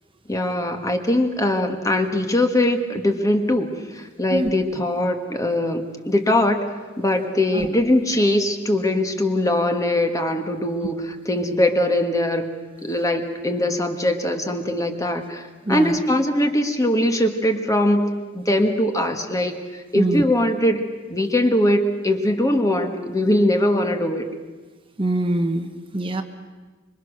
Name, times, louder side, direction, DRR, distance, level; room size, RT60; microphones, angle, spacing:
voice 1, 0.3-6.7 7.0-12.5 12.8-19.6 19.9-24.3, left 1 dB, 15° left, 5 dB, 1.8 m, -21 dB
voice 2, 15.6-16.0 19.9-20.2 25.0-25.7 25.9-26.2, right 1 dB, 25° right, 6 dB, 1.2 m, -23 dB
26.0 x 23.5 x 6.6 m, 1.3 s
head